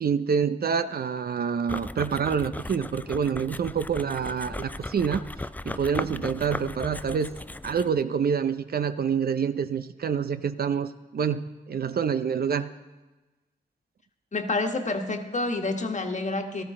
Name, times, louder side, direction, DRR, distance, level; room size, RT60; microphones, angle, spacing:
voice 1, 0.0-5.2 5.6-7.3 7.6-12.7, right 6 dB, 55° right, 11 dB, 0.6 m, -27 dB
sound 1, 1.7-8.0, left 2 dB, 10° left, 0.3 m, -37 dB
voice 2, 14.3-16.6, left 2 dB, 40° left, 4 dB, 1.5 m, -28 dB
14.0 x 13.0 x 3.7 m, 1.2 s
supercardioid pair, 45°, 19 cm